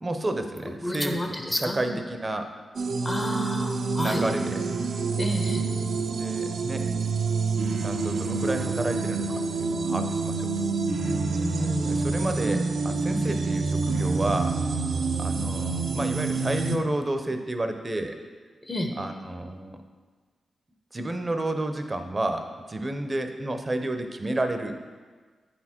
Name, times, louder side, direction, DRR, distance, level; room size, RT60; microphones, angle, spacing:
voice 1, 0.0-2.5 4.0-4.6 6.1-6.9 7.8-10.5 11.9-14.6 15.2-18.2 18.9-19.8 20.9-24.8, right 1 dB, 30° right, 6 dB, 0.7 m, -31 dB
voice 2, 0.8-2.0 3.0-4.2 5.2-5.6 9.8-10.0 11.3-12.0 18.7-18.9, left 1 dB, 30° left, 3 dB, 1.0 m, -30 dB
sound 1, 2.7-16.8, right 4 dB, 70° right, 0.5 m, -27 dB
9.0 x 4.3 x 4.3 m, 1.5 s
cardioid pair, 65°, 0 cm